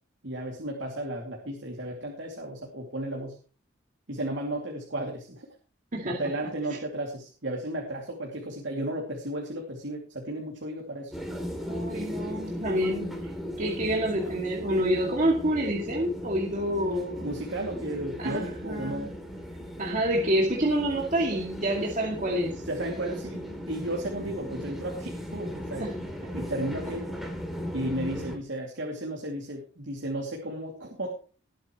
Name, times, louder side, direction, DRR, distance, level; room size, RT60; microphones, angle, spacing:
voice 1, 0.2-3.4 4.1-5.5 6.0-11.1 17.2-19.1 22.6-25.9 26.3-27.2 27.7-31.1, right 1 dB, 70° right, 0 dB, 2.8 m, -34 dB
voice 2, 5.9-6.5 11.6-13.3 13.6-17.2 18.2-19.1 19.8-22.6 23.1-23.5 25.8-26.0, right 1 dB, 40° right, -2 dB, 2.4 m, -28 dB
sound 1, 11.1-28.4, equal, ahead, 3.0 m, -37 dB
20.5 x 8.3 x 3.2 m, 0.39 s
head